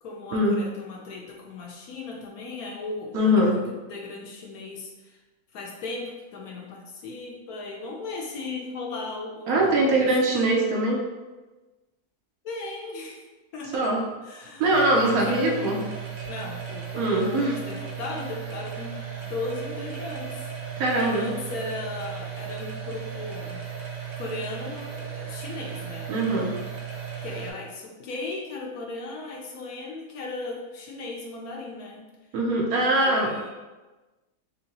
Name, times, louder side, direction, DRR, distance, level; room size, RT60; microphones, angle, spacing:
voice 1, 0.0-5.2 5.5-10.6 12.4-13.2 13.5-13.9 14.2-15.6 16.2-18.9 19.2-23.6 24.2-26.1 27.2-32.0 32.9-33.5, left 3 dB, 70° left, -1 dB, 1.0 m, -36 dB
voice 2, 3.1-3.6 9.5-11.0 13.7-14.0 14.6-15.8 17.0-17.5 20.8-21.2 26.1-26.5 32.3-33.3, right 1 dB, 70° right, -1 dB, 1.0 m, -22 dB
sound 1, 14.7-27.5, right 7 dB, 90° right, 1.4 m, -36 dB
3.7 x 2.7 x 2.8 m, 1.2 s
omnidirectional pair, 1.7 m